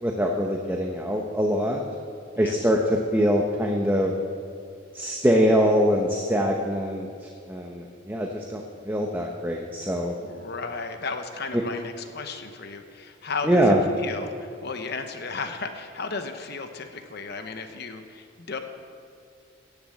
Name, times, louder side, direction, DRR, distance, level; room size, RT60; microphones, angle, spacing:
voice 1, 0.0-1.8 2.4-4.1 4.9-10.2 11.5-11.6 13.4-13.8, equal, 10° right, 1 dB, 0.8 m, -23 dB
voice 2, 10.2-18.6, left 4 dB, 50° left, 7 dB, 0.9 m, -34 dB
17.0 x 7.1 x 7.7 m, 2.5 s
head